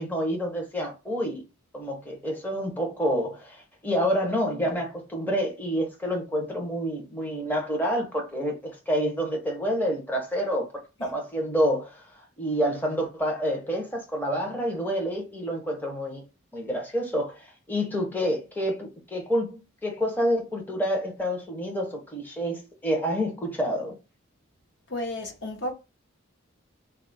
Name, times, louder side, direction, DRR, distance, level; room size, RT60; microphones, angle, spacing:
voice 1, 0.0-1.4 1.7-16.2 16.5-24.0, equal, 10° left, 0.7 m, -28 dB
voice 2, 24.9-25.7, left 1 dB, 55° left, 0.8 m, -32 dB
3.7 x 2.3 x 3.9 m
head